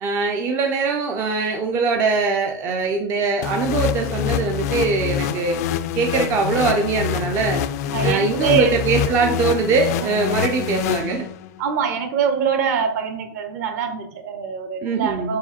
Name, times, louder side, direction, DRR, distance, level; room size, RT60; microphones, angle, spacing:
voice 1, 0.0-5.6 6.0-7.6 8.0-11.2 14.8-15.4, right 4 dB, 20° right, 3 dB, 0.4 m, -22 dB
sound 1, 3.4-11.6, left 10 dB, 45° left, 0.4 m, -25 dB
voice 2, 7.9-8.7 11.6-15.4, right 7 dB, 45° right, 8 dB, 1.0 m, -23 dB
4.8 x 4.7 x 4.3 m, 0.68 s
supercardioid pair, 160°, 12 cm